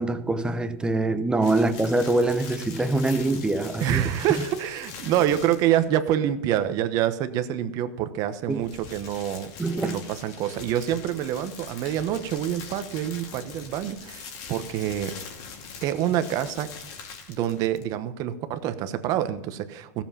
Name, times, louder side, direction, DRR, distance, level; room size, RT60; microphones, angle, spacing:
voice 1, 0.0-4.0 8.5-8.6 9.6-10.0, right 2 dB, 10° right, 10 dB, 0.9 m, -24 dB
sound 1, 1.4-5.9 8.4-17.9, left 5 dB, 50° left, 2.4 m, -42 dB
voice 2, 3.8-9.5 9.8-15.1 15.8-16.7 17.3-20.0, right 11 dB, 45° right, 11 dB, 1.1 m, -26 dB
15.0 x 7.3 x 5.7 m, 0.91 s
hypercardioid pair, 115°, 9 cm